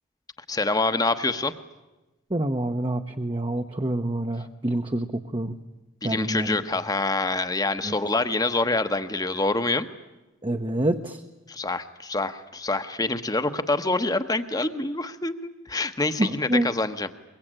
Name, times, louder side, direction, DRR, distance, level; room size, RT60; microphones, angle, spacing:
voice 1, 0.5-1.5 6.0-9.9 11.5-17.1, left 2 dB, 20° left, 10 dB, 1.0 m, -26 dB
voice 2, 2.3-5.5 6.0-6.6 7.8-7.9 10.4-11.2 16.2-16.7, right 1 dB, 25° right, 5 dB, 0.9 m, -27 dB
23.5 x 23.0 x 9.0 m, 1.1 s
head